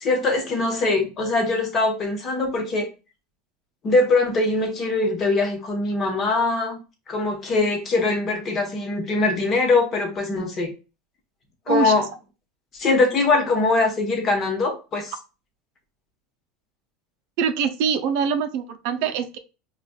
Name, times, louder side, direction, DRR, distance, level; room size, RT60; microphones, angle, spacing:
voice 1, 0.0-2.9 3.8-6.8 7.1-10.7 11.7-12.1 12.7-15.1, left 3 dB, 35° left, 1.0 m, -22 dB
voice 2, 17.4-19.4, right 6 dB, 65° right, 0.5 m, -23 dB
4.8 x 2.3 x 2.2 m
supercardioid pair, 125°, 0 cm